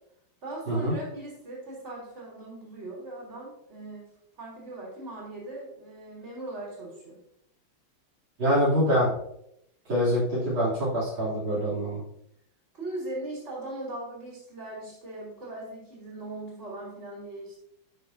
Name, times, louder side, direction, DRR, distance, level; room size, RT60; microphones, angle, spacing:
voice 1, 0.4-4.1 4.4-7.2 10.6-10.7 12.7-17.6, right 2 dB, 35° right, -5 dB, 3.8 m, -39 dB
voice 2, 8.4-9.1 9.9-12.0, equal, 75° right, -8 dB, 3.9 m, -25 dB
12.0 x 7.0 x 2.7 m, 0.76 s
omnidirectional pair, 2.2 m